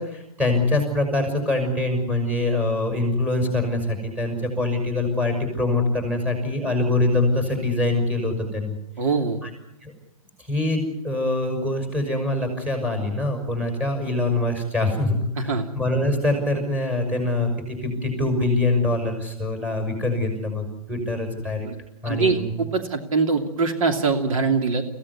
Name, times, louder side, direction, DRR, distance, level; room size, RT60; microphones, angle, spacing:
voice 1, 0.0-8.8 9.4-9.5 9.8-9.9 10.4-21.7 22.0-22.5, left 2 dB, 5° right, 3 dB, 5.9 m, -24 dB
voice 2, 9.0-9.4 15.4-15.7 21.6-21.8 22.0-24.8, right 4 dB, 65° right, 4 dB, 2.9 m, -23 dB
25.0 x 16.5 x 9.6 m, 0.87 s
hypercardioid pair, 150°, 19 cm